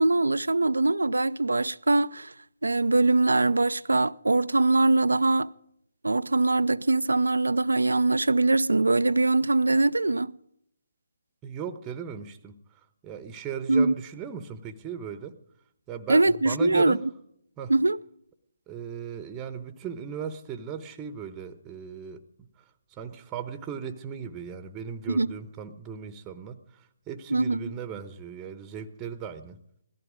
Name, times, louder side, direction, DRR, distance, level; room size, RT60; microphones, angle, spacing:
voice 1, 0.0-2.3 2.6-5.5 6.0-10.3 13.7-13.9 16.1-17.0 17.7-18.0 25.1-25.3 27.3-27.6, right 2 dB, 85° right, 0.5 m, -22 dB
voice 2, 11.4-12.6 13.0-15.4 15.9-17.0 17.6-17.7 18.7-22.2 22.6-22.7 22.9-29.6, right 7 dB, 15° right, 1.0 m, -37 dB
17.5 x 14.5 x 5.1 m
figure-of-eight pair, 145°, 0 cm